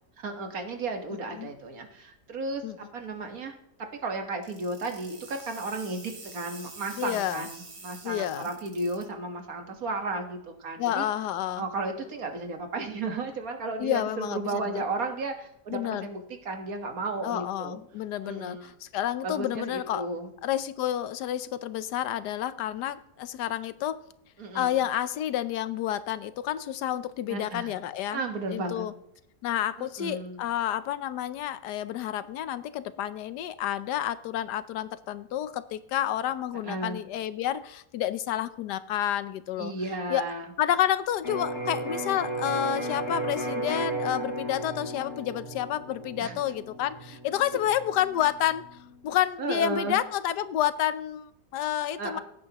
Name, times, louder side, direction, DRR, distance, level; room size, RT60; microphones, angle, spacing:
voice 1, 0.2-3.5 4.0-11.1 11.6-17.8 18.2-18.7 19.2-20.3 24.4-24.8 27.3-27.8 28.1-28.9 29.8-30.4 36.6-37.0 39.6-40.5 46.2-46.4 49.4-50.0 52.0-52.2, right 3 dB, 60° right, 5 dB, 1.8 m, -34 dB
voice 2, 1.1-1.5 2.6-2.8 7.0-7.4 8.0-8.5 10.8-11.6 13.8-14.8 15.7-16.1 17.2-20.1 20.4-24.0 24.5-28.2 28.5-28.9 29.4-39.7 40.1-40.2 40.6-48.6 49.0-52.2, left 11 dB, 90° left, 14 dB, 1.3 m, -30 dB
sound 1, 4.4-9.0, right 3 dB, 85° right, 3.0 m, -46 dB
Electric guitar, 41.2-49.0, right 1 dB, 60° left, 4.5 m, -35 dB
17.0 x 8.6 x 2.9 m, 0.79 s
omnidirectional pair, 1.7 m